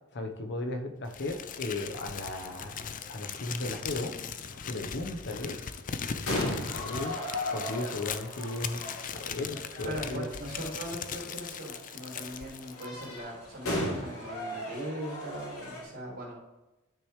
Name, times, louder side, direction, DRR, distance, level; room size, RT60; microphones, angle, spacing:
voice 1, 0.1-4.1 4.7-5.6 6.2-7.2 7.5-8.8 9.1-10.2, left 2 dB, 55° left, 5 dB, 1.0 m, -36 dB
sound 1, 1.1-15.8, left 1 dB, 85° left, 3.2 m, -39 dB
Crumpling crinkling, 1.1-13.2, left 7 dB, 40° left, 0.5 m, -39 dB
voice 2, 9.8-16.4, right 1 dB, 70° right, -9 dB, 3.1 m, -40 dB
12.0 x 6.7 x 3.2 m, 1.0 s
head